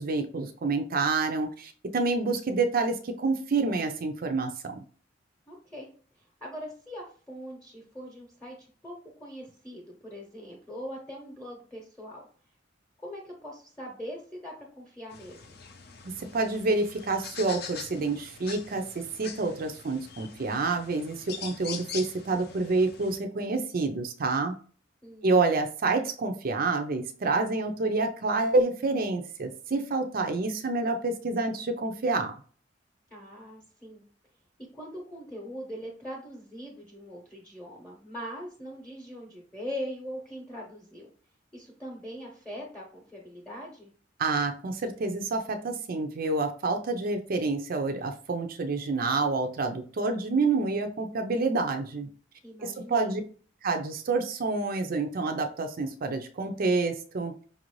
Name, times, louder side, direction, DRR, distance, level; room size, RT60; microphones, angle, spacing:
voice 1, 0.0-4.8 16.0-24.5 25.2-32.3 44.2-52.1 52.6-53.2 53.6-57.3, right 3 dB, 50° right, 5 dB, 0.5 m, -28 dB
voice 2, 5.5-5.9 6.4-12.2 13.0-15.6 25.0-25.3 33.1-34.0 34.7-41.1 41.5-43.9 52.4-53.2, equal, 5° left, -1 dB, 0.9 m, -41 dB
sound 1, 15.1-23.2, left 6 dB, 55° left, 0.6 m, -43 dB
5.4 x 2.6 x 3.1 m, 0.42 s
head